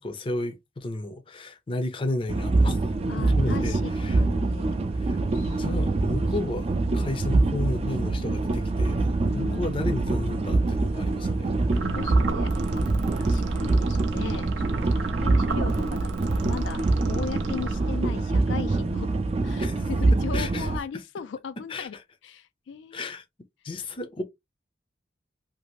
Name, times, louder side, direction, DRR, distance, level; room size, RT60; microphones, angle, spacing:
voice 1, 0.0-2.8 3.3-4.2 5.0-5.2 5.6-9.0 9.3-11.5 19.6-19.8 20.3-20.7 21.7-21.9 22.9-23.2 23.6-24.2, left 2 dB, 30° left, 0.5 m, -32 dB
sound 1, 2.3-20.8, right 2 dB, 35° right, 0.3 m, -25 dB
voice 2, 3.1-4.8 5.3-5.9 9.3-9.7 11.6-12.9 13.2-19.1 19.4-22.0 22.2-23.1, left 6 dB, 90° left, 0.3 m, -38 dB
sound 2, 11.7-18.2, right 3 dB, 85° right, 0.5 m, -34 dB
2.7 x 2.5 x 3.0 m
head